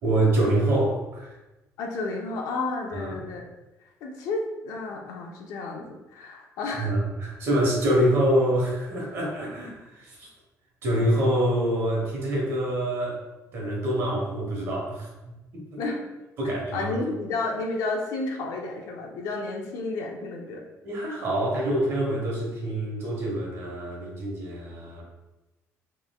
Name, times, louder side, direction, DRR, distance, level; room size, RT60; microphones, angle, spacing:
voice 1, 0.0-1.3 2.9-3.1 6.8-10.3 10.8-13.2 13.5-15.1 15.5-15.8 16.4-16.9 20.8-25.0, right 1 dB, 45° right, -2 dB, 1.2 m, -25 dB
voice 2, 1.8-3.4 4.0-6.9 15.8-16.0 16.4-20.6, left 3 dB, 75° left, 1 dB, 0.7 m, -31 dB
5.7 x 3.2 x 2.3 m, 1.0 s
cardioid pair, 180°, 6 cm